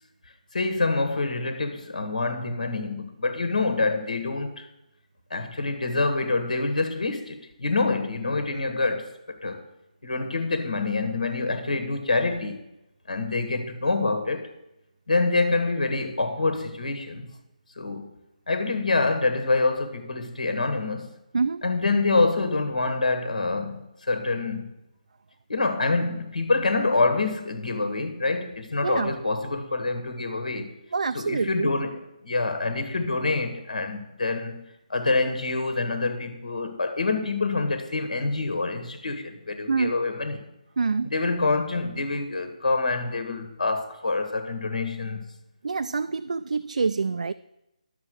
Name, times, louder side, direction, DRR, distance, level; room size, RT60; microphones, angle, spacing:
voice 1, 0.5-4.7 5.3-9.6 10.0-12.7 13.1-14.5 15.1-17.3 17.8-18.1 18.5-21.1 21.6-24.7 25.5-30.7 31.2-34.6 34.9-40.4 41.1-45.3, left 3 dB, 75° left, 1.8 m, -26 dB
voice 2, 21.3-21.6 28.8-29.2 30.9-31.7 39.7-39.9 40.8-41.1 45.6-47.3, right 4 dB, 70° right, 0.4 m, -26 dB
11.0 x 7.2 x 6.4 m
hypercardioid pair, 170°, 4 cm